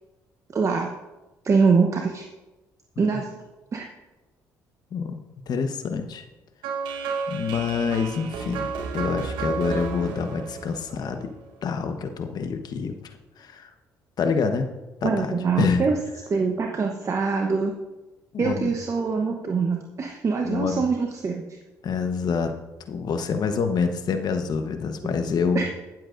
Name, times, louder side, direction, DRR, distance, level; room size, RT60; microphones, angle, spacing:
voice 1, 0.5-0.9 1.4-2.2 3.0-3.3 3.7-3.9 15.0-16.0 16.3-17.7 18.4-21.4 25.5-25.6, right 5 dB, 40° right, 2 dB, 1.0 m, -23 dB
voice 2, 5.5-6.3 7.3-11.3 11.6-12.9 13.4-13.7 14.2-14.7 15.0-15.3 15.6-15.8 18.3-18.7 20.4-20.8 21.8-22.5 22.9-25.6, left 5 dB, 60° left, 7 dB, 1.1 m, -26 dB
sound 1, 6.6-11.6, right 5 dB, 80° right, 1.2 m, -32 dB
22.5 x 7.6 x 2.6 m, 1.1 s
supercardioid pair, 70°, 8 cm